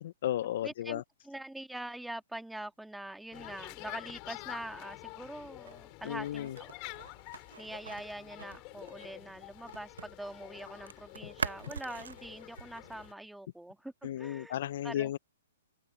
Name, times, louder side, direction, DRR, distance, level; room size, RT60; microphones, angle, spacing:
voice 1, 0.0-1.0 6.0-6.6 14.0-15.2, left 12 dB, 55° left, 0.4 m, -34 dB
voice 2, 0.6-6.7 7.6-14.6 14.8-15.2, right 1 dB, 5° right, 1.8 m, -44 dB
sound 1, 3.3-13.1, left 29 dB, 35° left, 3.1 m, -48 dB
sound 2, 5.6-10.2 10.4-13.1, right 6 dB, 80° right, 0.8 m, -44 dB
open air
hypercardioid pair, 135°, 0 cm